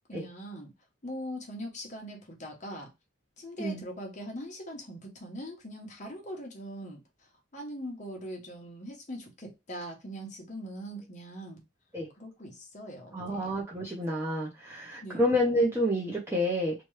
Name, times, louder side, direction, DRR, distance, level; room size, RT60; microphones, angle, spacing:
voice 1, 0.1-0.7 1.0-2.9 3.4-7.0 7.5-11.6 12.2-13.5 15.0-15.2, equal, 35° left, 0.8 m, -41 dB
voice 2, 13.1-16.7, equal, 10° right, 0.6 m, -29 dB
2.9 x 2.3 x 3.1 m
head